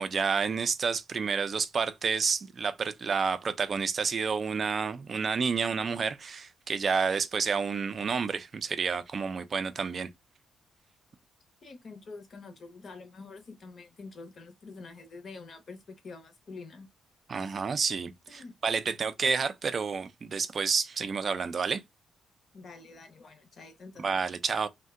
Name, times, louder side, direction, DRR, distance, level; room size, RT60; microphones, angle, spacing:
voice 1, 0.0-10.1 17.3-21.8 24.0-24.7, right 5 dB, 35° right, 0.3 m, -30 dB
voice 2, 11.6-15.8 16.0-16.9 18.3-18.6 18.9-19.0 22.5-24.3, left 3 dB, 40° left, 0.7 m, -47 dB
2.7 x 2.1 x 3.5 m
cardioid pair, 150°, 0 cm